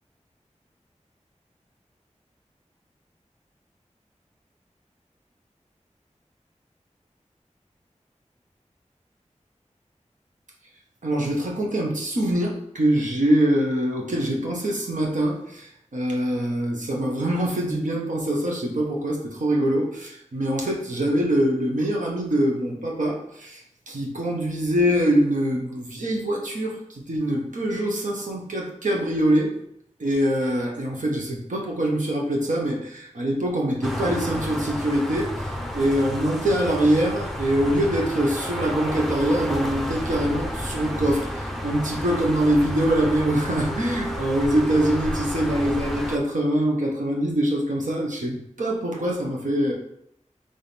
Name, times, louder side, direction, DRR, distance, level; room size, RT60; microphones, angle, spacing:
voice 1, 11.0-29.5 30.0-49.7, right 1 dB, 85° right, -2 dB, 1.0 m, -24 dB
sound 1, 33.8-46.2, equal, ahead, 0.6 m, -31 dB
3.6 x 3.5 x 4.1 m, 0.74 s
wide cardioid pair, 55°, 13 cm